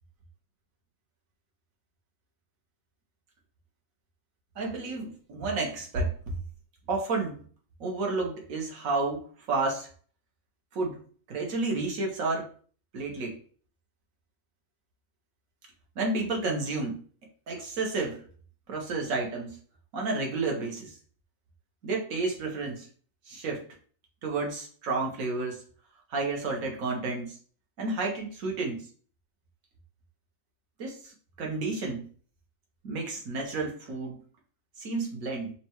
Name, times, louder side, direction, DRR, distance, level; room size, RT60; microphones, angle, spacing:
voice 1, 4.6-6.3 6.9-7.4 7.8-9.9 10.7-11.0 11.3-12.5 12.9-13.4 16.0-17.0 17.5-18.2 18.7-19.6 19.9-20.9 21.8-22.9 23.3-23.7 24.2-25.6 26.1-27.4 27.8-28.9 30.8-31.1 31.4-32.1 32.8-34.2 34.8-35.5, right 3 dB, 75° right, 1 dB, 1.4 m, -31 dB
5.8 x 2.3 x 3.0 m, 0.43 s
omnidirectional pair, 1.4 m